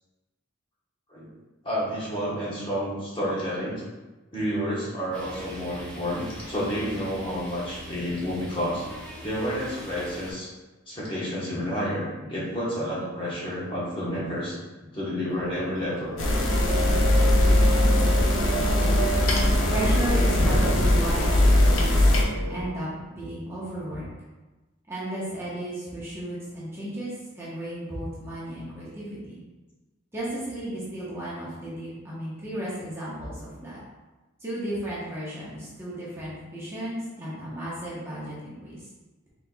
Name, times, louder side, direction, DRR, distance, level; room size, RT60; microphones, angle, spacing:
voice 1, 1.6-3.8 4.3-8.9 9.2-10.5 10.9-14.6 14.9-16.1, equal, 25° left, -7 dB, 1.1 m, -30 dB
sound 1, 5.1-10.3, equal, 5° left, 1.5 m, -42 dB
sound 2, 15.3-22.7, right 2 dB, 70° right, 0.7 m, -32 dB
sound 3, 16.2-22.2, left 1 dB, 85° left, 0.7 m, -20 dB
voice 2, 19.7-22.0 22.5-24.0 24.9-29.4 30.1-33.8 34.4-38.8, right 1 dB, 15° right, -9 dB, 1.0 m, -33 dB
4.3 x 4.0 x 2.3 m, 1.2 s
head